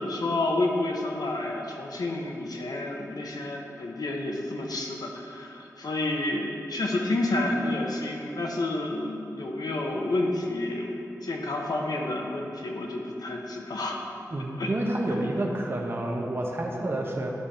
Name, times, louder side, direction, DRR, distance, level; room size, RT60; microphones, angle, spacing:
voice 1, 0.0-14.0 14.6-14.7, left 2 dB, 85° left, 0 dB, 1.1 m, -30 dB
voice 2, 14.3-17.3, right 1 dB, 35° right, 0 dB, 0.9 m, -29 dB
12.0 x 5.1 x 4.3 m, 2.7 s
wide cardioid pair, 105°, 7 cm